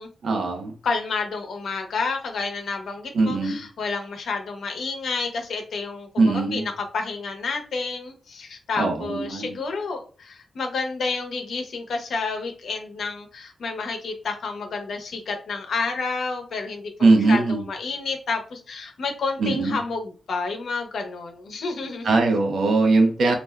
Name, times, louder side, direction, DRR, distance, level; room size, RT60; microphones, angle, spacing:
voice 1, 0.2-0.7 3.1-3.6 6.2-6.7 8.8-9.6 17.0-17.6 19.4-19.8 22.0-23.4, right 3 dB, 75° right, 4 dB, 0.7 m, -20 dB
voice 2, 0.8-22.1, left 4 dB, 80° left, 3 dB, 0.7 m, -30 dB
2.5 x 2.2 x 3.4 m, 0.37 s
wide cardioid pair, 105°, 0 cm